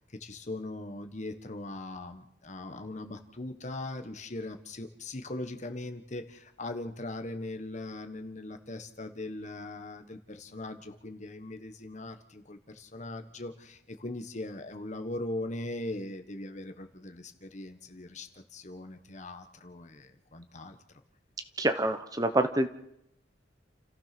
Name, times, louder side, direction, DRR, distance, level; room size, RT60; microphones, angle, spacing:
voice 1, 0.2-20.8, left 2 dB, 40° left, 7 dB, 1.4 m, -40 dB
voice 2, 21.6-22.7, right 1 dB, 20° right, 9 dB, 1.0 m, -26 dB
29.5 x 15.0 x 6.1 m, 0.78 s
head